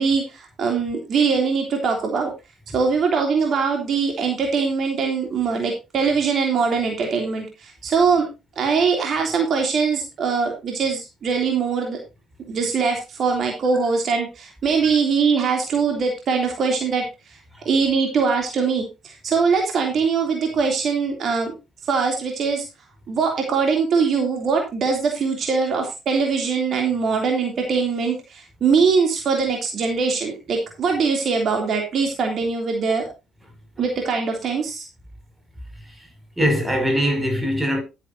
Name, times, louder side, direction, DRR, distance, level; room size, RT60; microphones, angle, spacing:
voice 1, 0.0-2.3 2.7-8.3 8.6-12.0 12.5-17.0 17.6-21.5 21.9-22.6 23.1-33.1 33.8-34.9, right 5 dB, 50° right, 3.1 m, -22 dB
voice 2, 35.8-36.1 36.4-37.8, equal, 5° right, 6.9 m, -22 dB
12.0 x 9.9 x 2.8 m
figure-of-eight pair, 50°, 0 cm